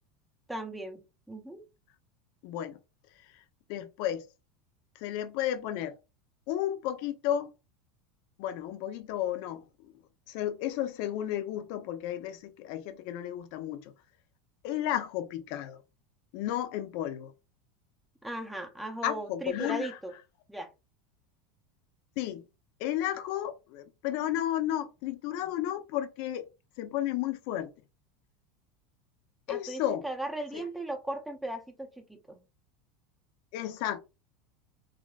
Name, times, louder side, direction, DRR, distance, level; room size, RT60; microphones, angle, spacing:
voice 1, 0.5-1.6 18.2-20.1 20.5-20.7 29.5-32.4, right 1 dB, ahead, 0.6 m, -37 dB
voice 2, 2.4-2.8 3.7-4.2 5.0-5.9 6.5-7.5 8.4-9.9 10.3-13.9 14.6-15.8 16.3-17.3 19.0-19.9 22.2-22.4 22.8-26.5 26.8-27.7 29.5-30.0 30.5-30.6 33.5-34.0, left 12 dB, 65° left, 0.5 m, -33 dB
3.6 x 2.3 x 2.3 m
hypercardioid pair, 95°, 0 cm